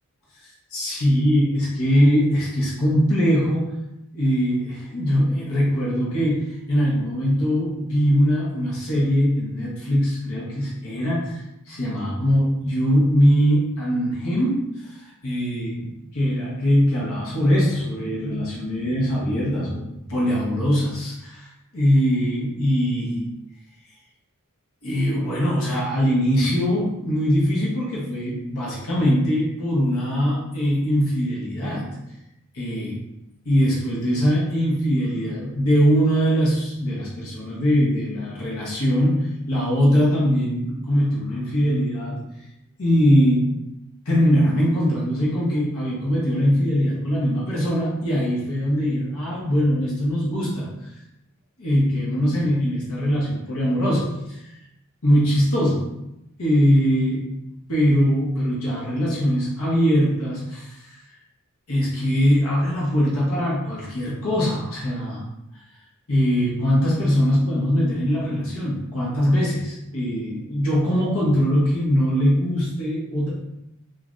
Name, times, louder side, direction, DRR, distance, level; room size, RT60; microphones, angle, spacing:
voice 1, 0.4-3.7 4.1-19.8 20.1-23.3 24.8-31.9 32.5-33.0 33.4-42.2 42.8-43.5 44.1-50.7 51.6-54.4 55.0-55.8 56.4-57.3 57.7-61.0 61.7-65.2 66.1-73.3, equal, 75° left, -6 dB, 0.9 m, -21 dB
3.1 x 2.4 x 2.5 m, 0.88 s
head